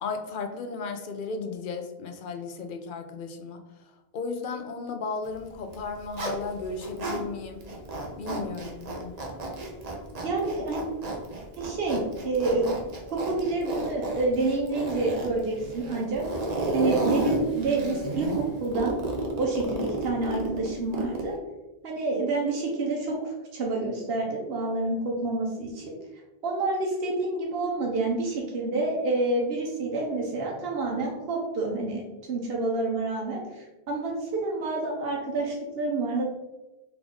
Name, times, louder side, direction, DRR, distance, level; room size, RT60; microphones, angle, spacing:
voice 1, 0.0-3.6 4.1-7.7 8.2-9.2, left 4 dB, 60° left, 6 dB, 0.7 m, -35 dB
Zipper (clothing), 5.6-7.2 7.6-21.4, right 2 dB, 45° right, 0.8 m, -32 dB
voice 2, 10.2-10.9 11.6-12.7 13.1-16.2 16.7-19.0 19.4-21.4 21.8-26.0 26.4-32.0 32.3-36.3, right 2 dB, 75° right, -2 dB, 1.0 m, -28 dB
3.6 x 3.5 x 3.8 m, 1.0 s
omnidirectional pair, 1.0 m